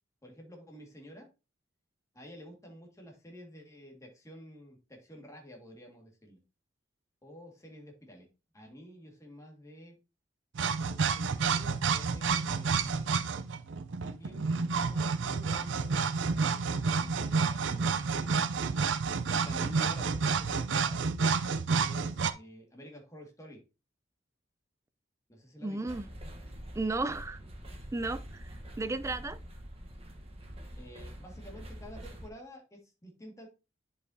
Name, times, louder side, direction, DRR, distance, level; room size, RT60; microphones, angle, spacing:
voice 1, 0.2-1.3 2.1-6.4 7.2-8.3 8.5-9.9 10.8-13.1 14.0-18.1 19.4-21.0 21.7-23.6 25.3-25.9 30.8-33.5, equal, 15° left, 1.9 m, -50 dB
sound 1, 10.5-22.3, right 5 dB, 70° right, 0.5 m, -30 dB
voice 2, 25.6-26.1 26.7-27.4 27.9-28.5 28.8-29.4, right 2 dB, 15° right, 0.4 m, -33 dB
sound 2, 25.9-32.3, equal, 30° right, 1.0 m, -45 dB
9.9 x 5.2 x 2.7 m
head